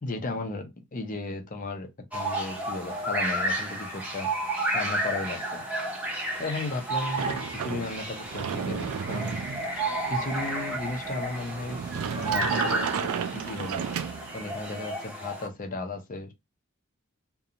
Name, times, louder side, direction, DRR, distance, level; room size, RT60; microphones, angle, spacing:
voice 1, 0.0-4.3 4.7-5.6 6.4-9.4 10.1-13.9 14.3-16.3, left 2 dB, 40° left, 0.6 m, -35 dB
sound 1, 2.1-15.5, right 2 dB, 5° right, 0.7 m, -32 dB
Frog / Percussion / Wood, 6.4-7.5 9.5-10.7, left 4 dB, 70° left, 0.8 m, -43 dB
Sliding door, 7.2-14.6, right 7 dB, 80° right, 0.4 m, -34 dB
2.5 x 2.2 x 2.8 m
head